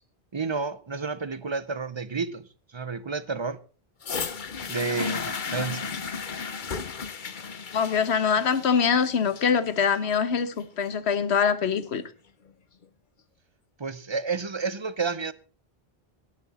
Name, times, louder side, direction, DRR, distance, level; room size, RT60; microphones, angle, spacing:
voice 1, 0.3-3.6 4.7-5.9 13.8-15.3, right 4 dB, 30° right, 0.7 m, -31 dB
sound 1, 4.0-12.0 12.8-12.9, left 5 dB, 50° left, 1.1 m, -35 dB
voice 2, 7.7-12.0, left 6 dB, 90° left, 1.3 m, -24 dB
17.5 x 11.0 x 4.2 m
omnidirectional pair, 1.1 m